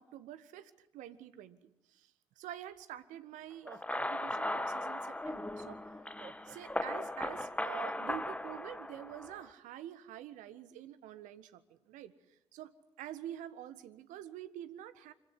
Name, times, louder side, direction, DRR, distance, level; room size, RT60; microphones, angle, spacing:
voice 1, 0.0-5.9 6.4-12.7 13.0-15.1, right 12 dB, 65° right, 14 dB, 1.5 m, -47 dB
Laughter, 2.8-2.9 3.5-5.2 6.2-7.4, right 4 dB, 30° right, 1.2 m, -54 dB
sound 1, 3.7-9.5, left 1 dB, 10° left, 1.9 m, -38 dB
25.5 x 16.0 x 9.8 m, 0.81 s
figure-of-eight pair, 45°, 14 cm